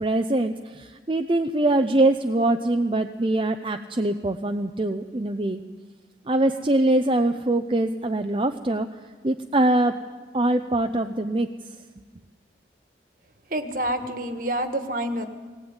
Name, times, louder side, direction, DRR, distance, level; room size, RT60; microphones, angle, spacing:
voice 1, 0.0-5.6 6.3-8.9 9.2-10.0 10.3-11.5, right 2 dB, 30° right, 6 dB, 0.7 m, -23 dB
voice 2, 13.5-15.3, right 1 dB, 50° right, 7 dB, 1.7 m, -27 dB
20.0 x 19.0 x 9.0 m, 1.4 s
head